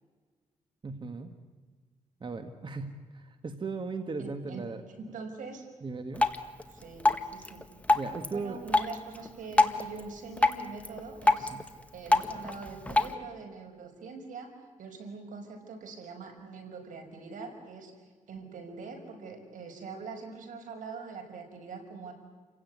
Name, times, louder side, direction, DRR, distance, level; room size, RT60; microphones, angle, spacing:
voice 1, 0.8-1.3 2.2-4.8 5.8-6.3 7.9-8.6 11.5-11.6, right 4 dB, 35° right, 7 dB, 1.8 m, -37 dB
voice 2, 4.2-4.7 5.0-5.7 6.7-7.7 8.3-11.5 11.9-14.5 14.8-17.9 18.3-22.1, right 4 dB, 80° right, 4 dB, 5.6 m, -43 dB
Drip, 6.1-13.1, left 2 dB, 10° left, 1.8 m, -29 dB
29.5 x 17.0 x 9.7 m, 1.5 s
cardioid pair, 95°, 13 cm